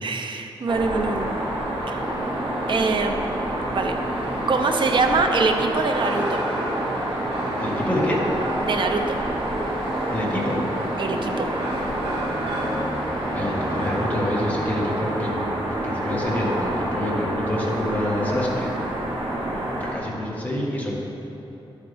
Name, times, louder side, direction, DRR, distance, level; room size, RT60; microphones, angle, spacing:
voice 1, 0.0-1.3 1.9-2.0 2.7-3.5 3.7-4.0 4.5-6.5 8.6-9.2 11.0-11.5, right 3 dB, 60° right, 5 dB, 0.7 m, -24 dB
sound 1, 0.7-19.9, right 1 dB, 80° right, 1.8 m, -27 dB
voice 2, 7.6-8.2 10.1-10.6 13.1-18.7 19.5-20.9, left 1 dB, 15° left, -4 dB, 1.6 m, -27 dB
12.5 x 8.1 x 3.5 m, 3.0 s
wide cardioid pair, 145°, 9 cm